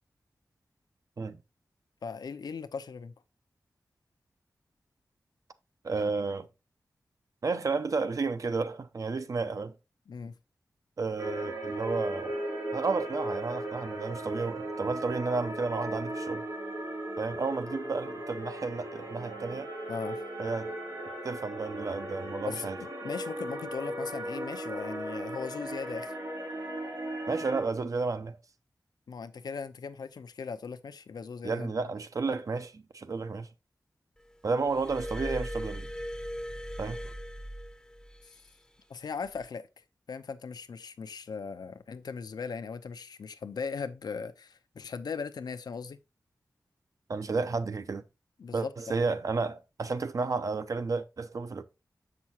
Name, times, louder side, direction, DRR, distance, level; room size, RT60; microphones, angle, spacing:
voice 1, 2.0-3.1 10.1-10.3 19.9-20.2 22.4-26.1 29.1-31.7 38.2-38.4 38.9-46.0 48.4-48.9, left 5 dB, 85° left, 0.6 m, -38 dB
voice 2, 5.8-6.5 7.4-9.7 11.0-12.4 12.7-16.5 17.2-19.7 20.4-20.7 21.2-22.8 27.3-28.4 31.4-33.5 34.4-35.9 36.8-37.1 47.1-48.0 48.5-51.6, right 4 dB, 55° right, 0.7 m, -32 dB
sound 1, 11.2-27.6, right 1 dB, 90° right, 2.2 m, -37 dB
Glass, 34.7-38.3 39.3-39.5, equal, 10° left, 0.6 m, -38 dB
7.4 x 6.0 x 2.8 m
wide cardioid pair, 85°, 7 cm